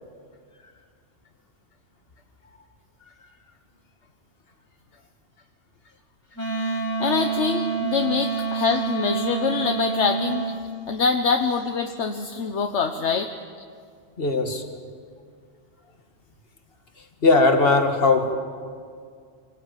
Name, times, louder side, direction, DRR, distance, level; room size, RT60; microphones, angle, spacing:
Wind instrument woodwind instrument, 6.3-10.5, right 5 dB, 90° left, 4.8 m, -27 dB
voice 1, 6.6-10.5 10.9-13.3, left 5 dB, 70° left, 5 dB, 1.3 m, -25 dB
voice 2, 14.2-14.6 17.2-18.3, left 3 dB, 50° left, 5 dB, 2.2 m, -19 dB
25.5 x 18.5 x 9.1 m, 2.1 s
omnidirectional pair, 1.2 m